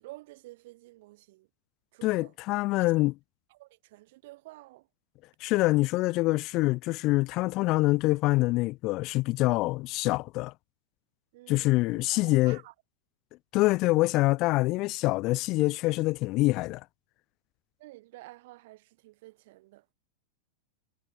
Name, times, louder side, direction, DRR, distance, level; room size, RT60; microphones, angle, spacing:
voice 1, 0.0-1.5 1.9-2.3 3.5-4.9 11.3-12.7 17.8-19.9, right 19 dB, 50° right, 3.9 m, -50 dB
voice 2, 2.0-3.1 5.4-10.5 11.5-12.6 13.5-16.8, left 21 dB, 40° left, 0.6 m, -25 dB
figure-of-eight pair, 90°, 0 cm